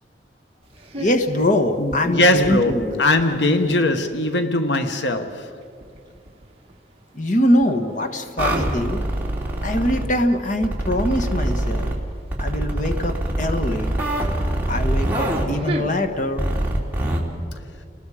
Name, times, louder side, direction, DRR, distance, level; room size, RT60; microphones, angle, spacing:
sound 1, 0.6-17.3, right 1 dB, 35° right, 1.6 m, -42 dB
voice 1, 1.0-3.0 7.1-9.0 9.6-12.0 12.4-14.0 14.7-16.5, left 1 dB, 45° left, 1.3 m, -22 dB
voice 2, 1.8-5.5, left 1 dB, 85° left, 1.2 m, -20 dB
sound 2, 8.4-10.1 10.6-11.9 12.3-15.4 16.4-17.2, right 1 dB, 10° right, 2.8 m, -23 dB
30.0 x 19.5 x 5.0 m
head